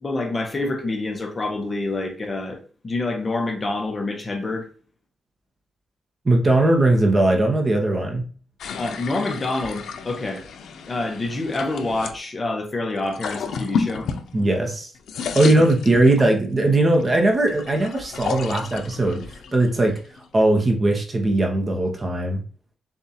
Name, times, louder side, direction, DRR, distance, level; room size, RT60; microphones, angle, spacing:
voice 1, 0.0-2.6 2.8-4.7 8.7-10.4 10.9-14.1, left 2 dB, 25° left, 0.8 m, -27 dB
voice 2, 6.2-8.3 14.3-14.9 15.3-19.2 19.5-20.0 20.3-22.4, right 2 dB, 25° right, 0.8 m, -19 dB
sound 1, 8.6-12.2 13.0-14.7 15.0-16.4 17.0-20.4, left 5 dB, 85° left, 0.5 m, -32 dB
7.0 x 2.4 x 2.7 m
wide cardioid pair, 170°, 0 cm